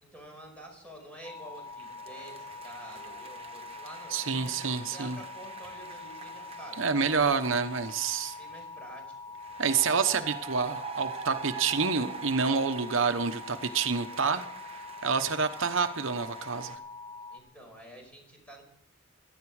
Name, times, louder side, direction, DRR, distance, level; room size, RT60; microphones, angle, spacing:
voice 1, 0.0-7.3 8.4-9.1 17.3-18.6, right 1 dB, 5° left, 1 dB, 5.4 m, -49 dB
sound 1, 1.2-17.4, left 4 dB, 25° left, 1.4 m, -44 dB
sound 2, 1.4-8.7 9.4-16.8, right 6 dB, 30° right, 1.1 m, -45 dB
voice 2, 4.1-5.2 6.8-8.3 9.6-14.4 15.0-16.8, right 5 dB, 75° right, 8 dB, 1.0 m, -28 dB
17.0 x 13.0 x 4.8 m, 0.73 s
head